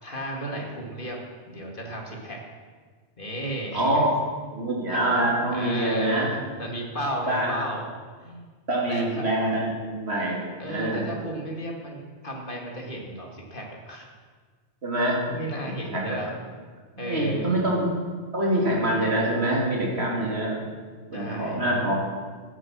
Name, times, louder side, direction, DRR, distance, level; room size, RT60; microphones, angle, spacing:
voice 1, 0.0-1.2 1.5-2.4 3.2-4.0 5.1-5.2 5.5-7.8 8.2-8.4 8.9-9.2 10.6-14.1 15.3-16.3 17.0-17.5 21.1-21.6, right 1 dB, 50° left, 0 dB, 2.4 m, -34 dB
voice 2, 3.7-4.1 4.5-6.3 7.3-7.5 8.7-11.1 14.8-15.4 15.9-16.2 17.0-17.9 18.3-20.6 21.1-22.0, right 1 dB, 65° right, -3 dB, 3.3 m, -25 dB
15.0 x 10.0 x 6.1 m, 1.6 s
omnidirectional pair, 1.2 m